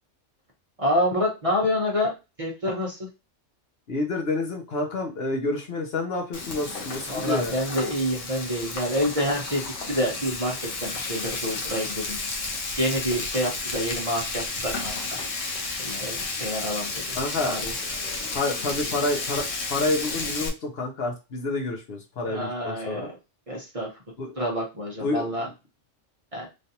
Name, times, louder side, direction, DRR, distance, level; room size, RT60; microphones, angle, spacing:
voice 1, 0.8-2.1 2.4-3.1 7.1-12.2 12.8-15.2 15.8-17.2 17.4-17.7 22.3-23.2 23.5-23.9 24.4-25.5 26.3-26.5, equal, 35° right, -2 dB, 0.7 m, -27 dB
voice 2, 3.9-7.5 17.1-17.6 18.3-23.0 24.2-24.3 25.0-25.3, left 2 dB, 60° left, 2 dB, 0.9 m, -28 dB
Frying (food), 6.3-20.5, left 3 dB, 80° left, 1.1 m, -32 dB
3.2 x 2.5 x 2.7 m, 0.27 s
omnidirectional pair, 1.3 m